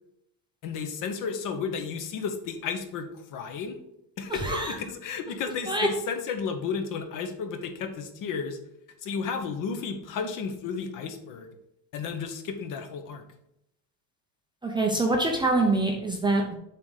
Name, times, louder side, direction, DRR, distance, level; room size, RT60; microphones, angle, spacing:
voice 1, 0.6-3.8 4.2-8.6 9.0-11.5 11.9-13.2, left 5 dB, 40° left, 6 dB, 1.1 m, -33 dB
voice 2, 4.4-4.7 5.7-5.9 14.6-16.5, right 2 dB, 10° right, 1 dB, 0.6 m, -25 dB
7.2 x 3.8 x 6.3 m, 0.82 s
supercardioid pair, 140°, 48 cm